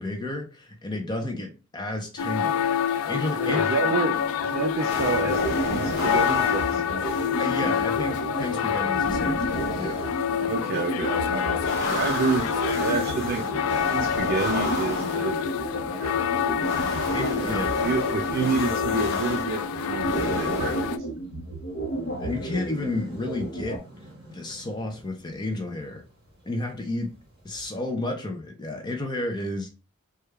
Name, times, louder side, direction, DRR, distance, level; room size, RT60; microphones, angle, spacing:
voice 1, 0.0-2.7 3.1-3.6 7.4-10.1 11.9-12.0 16.5-16.8 17.1-17.7 22.2-23.8 24.3-26.0 26.4-27.1 27.4-29.7, left 2 dB, 20° left, 4 dB, 0.5 m, -31 dB
sound 1, 2.2-21.0, left 8 dB, 90° left, 0.3 m, -27 dB
voice 2, 3.4-7.2 10.3-11.6 12.0-13.5 13.9-15.5 16.0-16.2 17.5-20.8, right 4 dB, 50° right, 4 dB, 0.4 m, -29 dB
sound 2, 4.9-23.8, equal, 55° left, 0.8 m, -31 dB
sound 3, 11.4-27.8, right 1 dB, 25° right, 1.4 m, -50 dB
3.3 x 2.3 x 3.2 m, 0.31 s
head